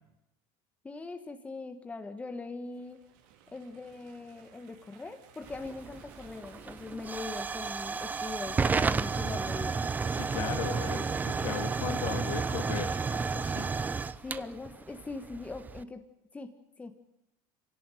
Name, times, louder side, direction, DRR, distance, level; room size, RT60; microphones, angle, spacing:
voice 1, 0.8-3.0 3.5-9.8 14.2-16.0 16.3-16.9, left 3 dB, 15° left, 7 dB, 1.7 m, -41 dB
sound 1, 2.6-13.4, right 8 dB, 85° right, 4.7 m, -57 dB
Hiss / Fire / Tick, 5.4-15.8, right 4 dB, 15° right, 0.8 m, -32 dB
voice 2, 10.1-13.7, left 9 dB, 65° left, 6 dB, 3.2 m, -37 dB
26.0 x 17.5 x 9.3 m, 0.91 s
cardioid pair, 135°, 10 cm